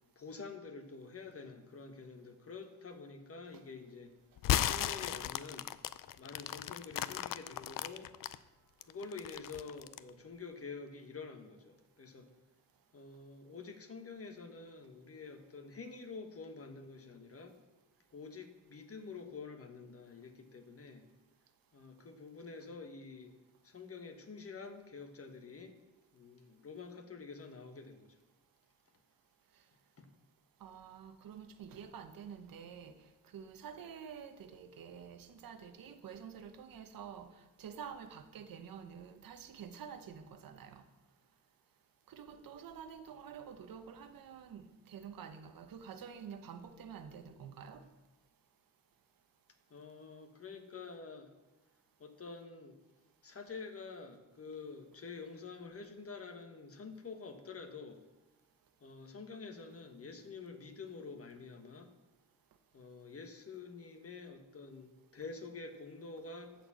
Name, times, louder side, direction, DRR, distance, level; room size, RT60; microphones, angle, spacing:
voice 1, 0.1-4.1 4.5-5.7 6.2-8.1 8.8-12.3 12.9-17.6 18.1-21.1 21.7-23.3 23.6-25.7 26.1-28.1 30.0-30.1 49.7-51.3 52.0-52.8 53.2-58.0 58.8-61.9 62.7-66.5, left 4 dB, 45° left, 6 dB, 1.4 m, -48 dB
sound 1, 4.4-8.3 8.8-10.1, left 12 dB, 70° left, 0.5 m, -35 dB
voice 2, 30.6-40.8 42.1-47.9, right 7 dB, 80° right, 9 dB, 0.9 m, -49 dB
13.0 x 4.5 x 7.5 m, 1.1 s
cardioid pair, 95°, 34 cm